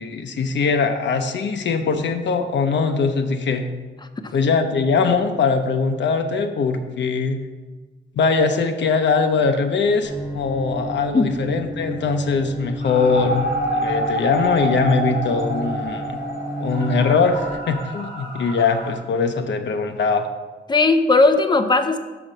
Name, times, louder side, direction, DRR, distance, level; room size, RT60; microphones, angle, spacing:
voice 1, 0.0-3.7 4.3-7.4 8.2-13.5 13.7-16.2 16.6-20.3, left 4 dB, 80° left, 7 dB, 0.7 m, -21 dB
Bowed string instrument, 10.0-17.5, right 2 dB, 10° right, 2.5 m, -31 dB
sound 1, 12.8-18.9, equal, 50° left, 2.7 m, -27 dB
voice 2, 20.7-22.0, left 3 dB, 25° left, 8 dB, 0.6 m, -17 dB
6.0 x 6.0 x 6.5 m, 1.3 s
wide cardioid pair, 135°, 19 cm